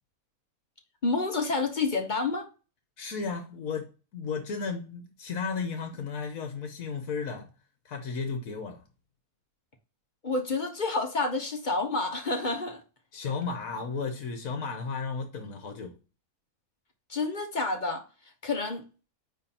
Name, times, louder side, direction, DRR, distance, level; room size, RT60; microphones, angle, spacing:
voice 1, 1.0-2.5 10.2-12.8 17.1-18.0 18.4-18.8, left 3 dB, 35° left, 1.2 m, -29 dB
voice 2, 3.0-7.5 7.8-8.8 13.1-16.0, left 5 dB, 65° left, 1.4 m, -34 dB
9.4 x 3.2 x 4.4 m
omnidirectional pair, 1.6 m